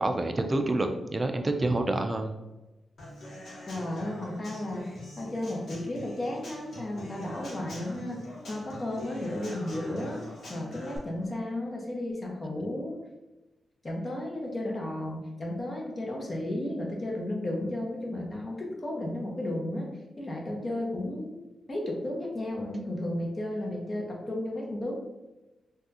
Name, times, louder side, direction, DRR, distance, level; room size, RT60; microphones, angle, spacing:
voice 1, 0.0-2.4, right 2 dB, 30° right, 6 dB, 0.4 m, -27 dB
Human voice / Acoustic guitar / Drum, 3.0-11.0, left 1 dB, 65° left, 1.0 m, -44 dB
voice 2, 3.7-4.9 5.2-8.2 8.5-10.2 10.5-13.0 13.8-19.9 20.2-21.4 21.7-25.0, left 1 dB, 40° left, -1 dB, 0.9 m, -33 dB
3.4 x 2.3 x 2.8 m, 1.0 s
cardioid pair, 55°, 0 cm